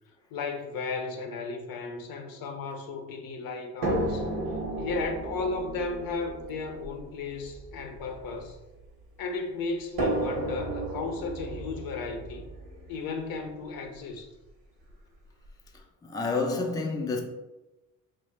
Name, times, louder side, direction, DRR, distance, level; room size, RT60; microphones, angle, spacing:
voice 1, 0.3-4.3 4.8-8.6 9.2-12.4 12.9-14.3, left 4 dB, 70° left, 0.6 m, -34 dB
sound 1, 3.8-9.0 10.0-13.9 14.9-15.0 15.4-15.5, right 1 dB, 75° right, 0.8 m, -34 dB
voice 2, 15.7-17.2, left 3 dB, 10° left, 0.4 m, -29 dB
2.8 x 2.1 x 3.2 m
supercardioid pair, 70°, 36 cm